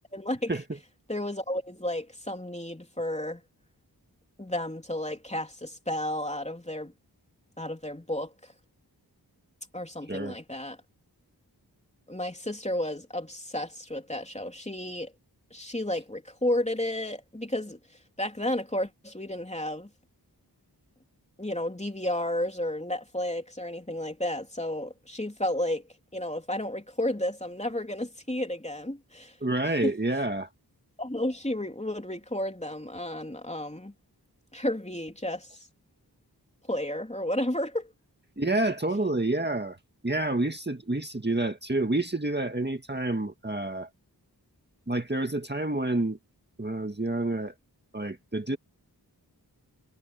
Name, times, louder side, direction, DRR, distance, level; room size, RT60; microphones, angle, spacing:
voice 1, 0.1-0.5 1.1-3.4 4.4-6.9 7.6-8.5 9.7-10.8 12.1-15.1 15.5-17.8 18.2-19.9 21.4-25.8 26.1-29.4 29.8-29.9 31.0-33.9 34.5-35.5 36.7-37.9, left 1 dB, 15° left, 3.3 m, -32 dB
voice 2, 29.4-30.5 38.4-39.8 40.0-43.9 44.9-46.2 46.6-47.5 47.9-48.6, right 2 dB, 25° right, 1.9 m, -28 dB
wide cardioid pair, 60°, 39 cm